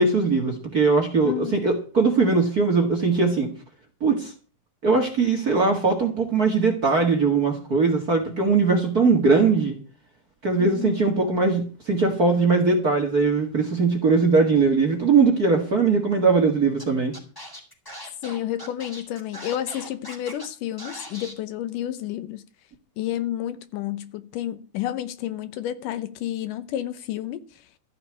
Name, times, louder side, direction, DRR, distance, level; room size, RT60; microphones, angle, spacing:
voice 1, 0.0-3.5 4.0-4.3 4.8-9.8 10.4-17.1, right 4 dB, 35° right, 1.8 m, -20 dB
voice 2, 1.2-1.7 10.6-11.2 18.2-22.4 23.0-27.5, left 12 dB, 75° left, 2.3 m, -30 dB
Scratching (performance technique), 16.8-16.9 17.1-20.5 20.8-21.3, equal, 5° left, 3.2 m, -39 dB
14.0 x 5.7 x 9.7 m
omnidirectional pair, 4.0 m